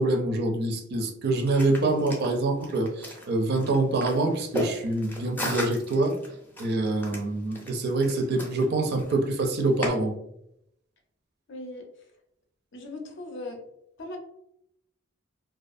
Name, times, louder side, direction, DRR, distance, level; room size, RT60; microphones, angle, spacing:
voice 1, 0.0-6.2 6.6-10.1, right 2 dB, 50° right, 4 dB, 0.4 m, -25 dB
sound 1, 1.4-9.9, left 1 dB, 10° left, 0.4 m, -36 dB
voice 2, 11.5-11.9 12.7-13.6 14.0-14.2, left 2 dB, 60° left, 3 dB, 0.5 m, -38 dB
2.4 x 2.4 x 2.5 m, 0.76 s
head